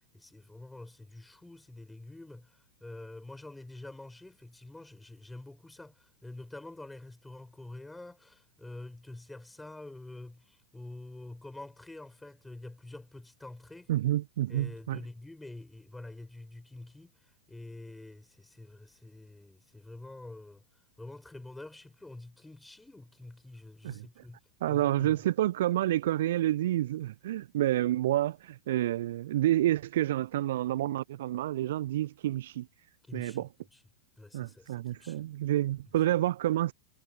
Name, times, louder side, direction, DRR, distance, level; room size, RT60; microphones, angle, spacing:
voice 1, 0.1-13.9 14.5-17.1 17.5-20.6 21.0-24.4 24.7-25.2 33.1-33.5 33.7-33.8 34.2-35.2, left 2 dB, 5° left, 6.8 m, -47 dB
voice 2, 13.9-15.0 23.8-24.2 24.6-32.7 33.1-33.5 34.3-36.7, right 14 dB, 55° right, 0.4 m, -29 dB
figure-of-eight pair, 90°, 0 cm